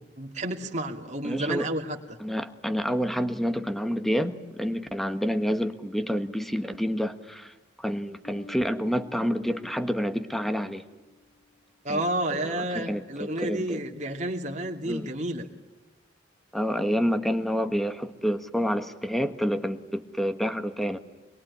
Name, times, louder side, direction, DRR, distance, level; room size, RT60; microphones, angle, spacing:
voice 1, 0.2-2.0 11.8-15.5, right 1 dB, 40° right, 2 dB, 2.7 m, -30 dB
voice 2, 1.2-1.7 2.2-10.8 11.9-12.0 12.3-13.8 14.8-15.1 16.5-21.0, equal, ahead, 9 dB, 1.3 m, -28 dB
Bass guitar, 8.2-11.7, left 3 dB, 80° left, 5.2 m, -50 dB
25.5 x 22.5 x 9.7 m, 1.2 s
head